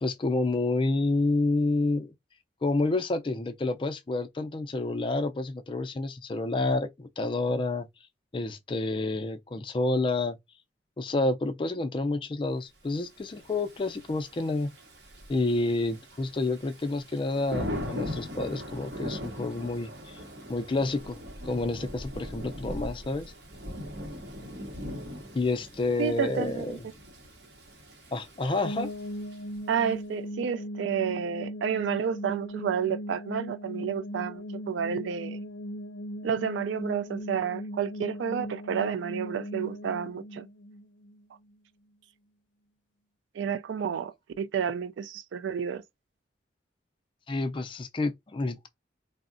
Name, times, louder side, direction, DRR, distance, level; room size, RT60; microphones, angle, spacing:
voice 1, 0.0-2.1 2.6-7.9 8.3-10.4 11.0-14.7 15.3-20.2 20.5-21.2 21.5-23.3 25.3-26.8 28.1-28.9 47.3-48.7, left 2 dB, 30° left, 0.4 m, -29 dB
Thunder / Rain, 13.2-29.8, left 1 dB, 65° right, 0.8 m, -40 dB
voice 2, 26.0-26.8 29.7-35.4 36.2-40.5 43.3-45.8, right 7 dB, 90° right, 0.3 m, -30 dB
sound 1, 28.6-41.5, equal, 90° left, 0.5 m, -39 dB
3.4 x 2.0 x 2.5 m
head